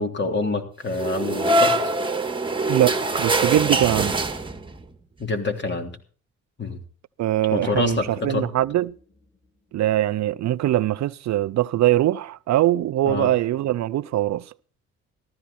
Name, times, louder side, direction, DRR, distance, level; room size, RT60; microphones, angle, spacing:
voice 1, 0.0-1.9 5.2-5.9 6.6-6.8 7.5-8.5 13.0-13.3, left 3 dB, 35° left, 3.3 m, -26 dB
sound 1, 0.9-4.8, right 2 dB, 15° right, 1.7 m, -23 dB
voice 2, 2.7-4.2 7.2-9.0 9.7-14.5, right 14 dB, 65° right, 0.5 m, -22 dB
sound 2, 7.6-10.2, equal, 5° left, 3.7 m, -48 dB
15.0 x 14.0 x 4.3 m
cardioid pair, 90°, 30 cm